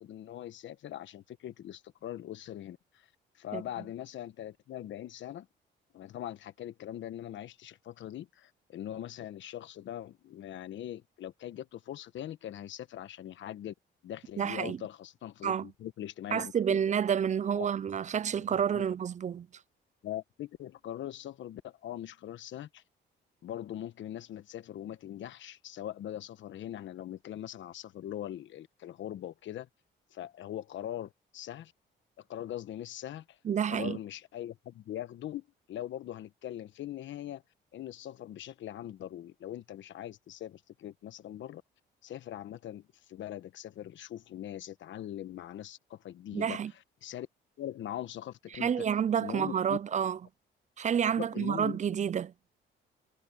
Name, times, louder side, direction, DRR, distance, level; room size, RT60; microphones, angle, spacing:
voice 1, 0.0-3.1 3.4-5.5 5.9-13.7 14.0-16.8 17.5-17.7 18.5-18.9 20.0-22.8 23.4-29.7 30.1-31.7 32.2-33.4 33.7-37.4 37.7-41.6 42.0-46.6 47.0-47.3 47.6-48.8 49.2-49.8 51.2-51.8, left 12 dB, 70° left, 1.2 m, -41 dB
voice 2, 14.4-14.8 15.4-15.7 16.3-19.5 33.4-34.0 46.3-46.7 48.6-50.2 50.8-52.3, right 8 dB, 40° right, 0.5 m, -29 dB
cardioid pair, 90°, 20 cm